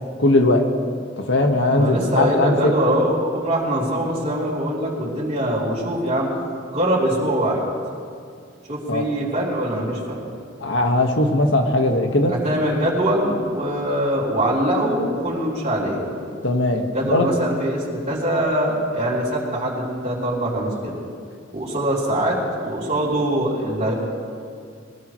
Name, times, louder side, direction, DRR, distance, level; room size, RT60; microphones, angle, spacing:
voice 1, 0.2-0.7 1.2-2.7 8.9-9.1 10.6-12.3 16.4-17.3, left 2 dB, 85° left, 3 dB, 1.6 m, -19 dB
voice 2, 1.8-6.3 6.7-7.6 8.7-10.2 12.3-16.0 16.8-20.9 21.5-23.9, right 1 dB, 35° right, -7 dB, 3.7 m, -23 dB
21.5 x 20.0 x 3.2 m, 2.3 s
head